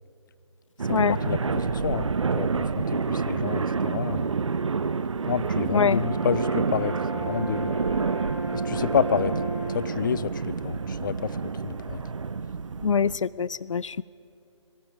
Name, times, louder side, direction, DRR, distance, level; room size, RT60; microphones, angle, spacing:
sound 1, 0.8-13.2, right 5 dB, 75° right, 0.8 m, -28 dB
voice 1, 0.9-4.3 5.3-7.8 8.6-9.3 9.7-11.4 11.6-12.0, left 7 dB, 40° left, 18 dB, 0.6 m, -29 dB
Brass instrument, 5.5-10.0, right 2 dB, 10° right, 3.2 m, -35 dB
voice 2, 12.8-14.0, left 6 dB, 80° left, 20 dB, 0.4 m, -24 dB
26.5 x 22.0 x 5.0 m, 2.8 s
figure-of-eight pair, 150°, 16 cm